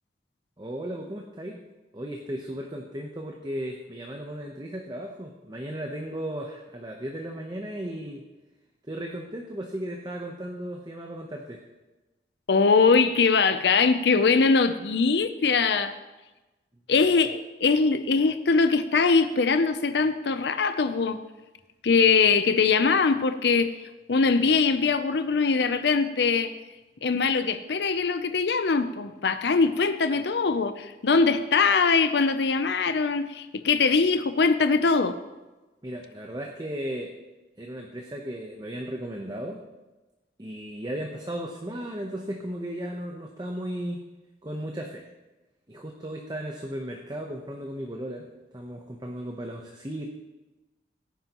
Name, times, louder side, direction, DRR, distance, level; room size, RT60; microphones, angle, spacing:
voice 1, 0.6-1.7 1.9-8.2 8.9-11.6 35.8-37.1 37.6-39.6 40.4-44.1 44.4-45.1 45.7-48.3 48.5-50.1, right 1 dB, 25° right, 1 dB, 0.9 m, -35 dB
voice 2, 12.5-15.9 16.9-21.2 21.8-23.7 24.1-26.5 27.0-35.2, left 4 dB, 70° left, 10 dB, 0.6 m, -22 dB
17.0 x 10.0 x 3.0 m, 1.1 s
head